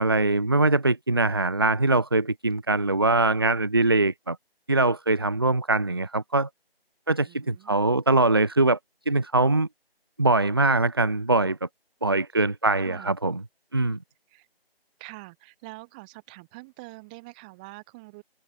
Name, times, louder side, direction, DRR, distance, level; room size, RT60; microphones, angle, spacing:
voice 1, 0.0-4.4 4.7-6.5 7.1-8.8 9.1-9.7 10.2-11.6 12.0-13.4 13.7-14.0, right 2 dB, 25° right, 1.0 m, -22 dB
voice 2, 7.2-7.8 12.8-13.1 14.3-14.5 15.0-18.2, right 26 dB, 10° right, 5.6 m, -45 dB
figure-of-eight pair, 170°, 31 cm